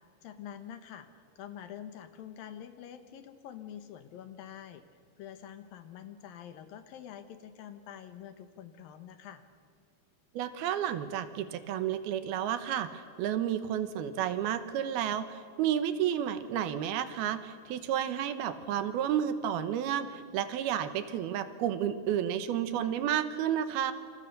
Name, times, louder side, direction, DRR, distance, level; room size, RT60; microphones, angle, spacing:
voice 1, 0.2-4.8 5.2-9.4, left 9 dB, 70° left, 9 dB, 2.6 m, -46 dB
voice 2, 10.3-23.9, right 10 dB, 75° right, 11 dB, 2.9 m, -31 dB
28.0 x 27.0 x 6.6 m, 2.1 s
omnidirectional pair, 4.6 m